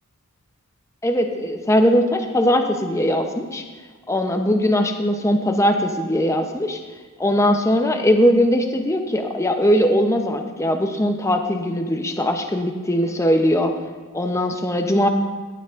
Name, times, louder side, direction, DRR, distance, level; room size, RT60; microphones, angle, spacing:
voice 1, 1.0-3.6 4.1-6.8 7.2-13.7 14.1-15.1, equal, 15° left, 4 dB, 0.6 m, -20 dB
17.5 x 9.1 x 2.5 m, 1.4 s
head